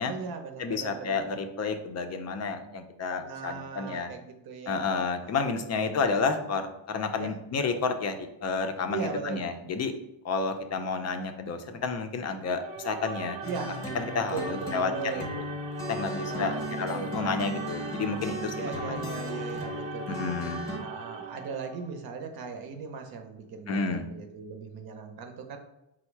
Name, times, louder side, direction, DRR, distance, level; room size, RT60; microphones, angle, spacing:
voice 1, 0.0-1.2 3.2-4.9 5.2-6.0 7.2-7.3 8.9-9.5 13.4-13.7 14.3-15.3 16.3-17.2 18.5-20.4 20.8-25.6, right 5 dB, 50° right, 5 dB, 0.7 m, -38 dB
voice 2, 0.6-4.1 4.7-8.2 8.4-9.9 10.2-13.4 13.9-15.2 15.9-19.1 20.1-20.6 23.7-24.0, left 4 dB, 35° left, 7 dB, 0.5 m, -30 dB
sound 1, 12.4-21.9, right 4 dB, 90° right, 0.7 m, -40 dB
sound 2, 13.4-20.8, equal, 5° left, 0.9 m, -36 dB
4.3 x 2.1 x 4.5 m, 0.86 s
cardioid pair, 110°, 47 cm